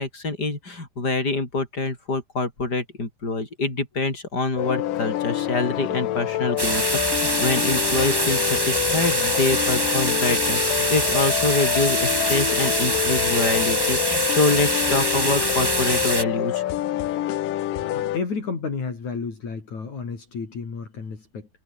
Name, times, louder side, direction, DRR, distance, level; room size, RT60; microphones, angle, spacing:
voice 1, 0.0-16.6, left 3 dB, 25° left, 7.3 m, -26 dB
sound 1, 4.6-18.2, left 13 dB, 80° left, 2.9 m, -26 dB
sound 2, 6.6-16.2, right 1 dB, 10° right, 2.0 m, -24 dB
voice 2, 17.9-21.5, left 5 dB, 60° left, 6.0 m, -31 dB
omnidirectional pair, 3.8 m